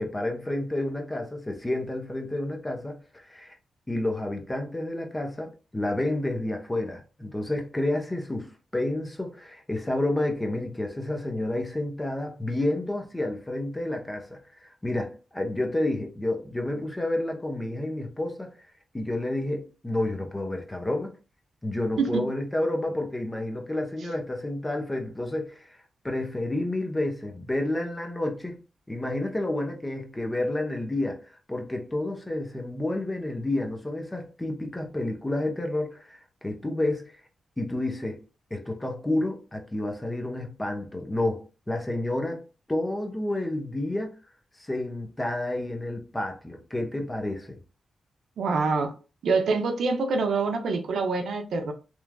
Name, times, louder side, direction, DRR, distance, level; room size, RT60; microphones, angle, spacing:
voice 1, 0.0-3.0 3.3-3.5 3.9-14.4 14.8-18.5 18.9-21.1 21.6-25.8 26.0-28.6 28.9-31.2 31.5-37.1 37.6-38.2 38.5-44.1 44.6-47.6, left 1 dB, 20° left, 0.8 m, -30 dB
voice 2, 48.4-48.9 49.2-51.7, right 4 dB, 75° right, 0.5 m, -25 dB
3.0 x 2.3 x 2.2 m
supercardioid pair, 50°, 0 cm